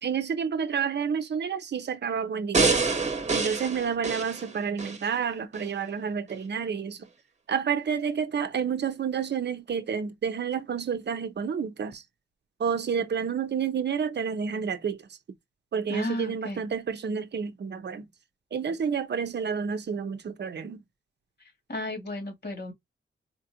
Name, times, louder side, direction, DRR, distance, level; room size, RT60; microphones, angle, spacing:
voice 1, 0.0-2.8 3.3-7.0 7.5-12.0 12.6-15.2 15.7-18.1 18.5-20.8, right 6 dB, 55° right, 0.6 m, -30 dB
sound 1, 2.5-5.0 5.5-5.6, right 4 dB, 35° right, 1.1 m, -26 dB
voice 2, 15.9-16.6 21.7-22.7, left 1 dB, 50° left, 2.0 m, -33 dB
4.3 x 2.4 x 2.8 m
wide cardioid pair, 115°, 21 cm